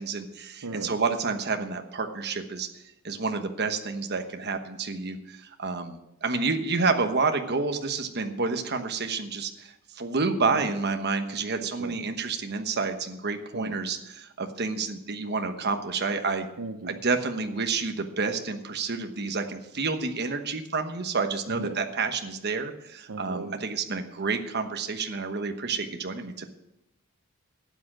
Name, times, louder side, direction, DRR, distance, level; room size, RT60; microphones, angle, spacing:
voice 1, 0.0-2.7 3.0-16.5 16.8-26.5, right 4 dB, 50° right, 6 dB, 1.1 m, -29 dB
voice 2, 0.6-0.9 10.6-10.7 11.6-11.9 13.5-13.7 16.6-17.0 21.6-21.8 23.1-23.6, right 3 dB, 80° right, 8 dB, 0.7 m, -37 dB
12.0 x 9.0 x 6.2 m, 0.87 s
head